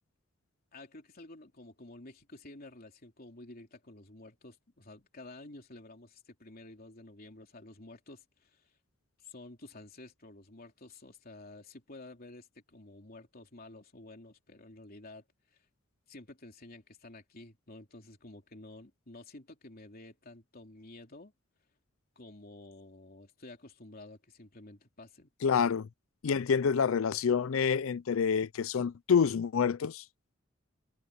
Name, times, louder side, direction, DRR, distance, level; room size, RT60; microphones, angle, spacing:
voice 1, 0.7-8.7 9.2-15.2 15.5-15.6 16.1-21.3 22.1-25.7, left 2 dB, 50° left, 3.3 m, -51 dB
voice 2, 25.4-25.9 26.2-30.0, left 6 dB, 85° left, 0.5 m, -27 dB
head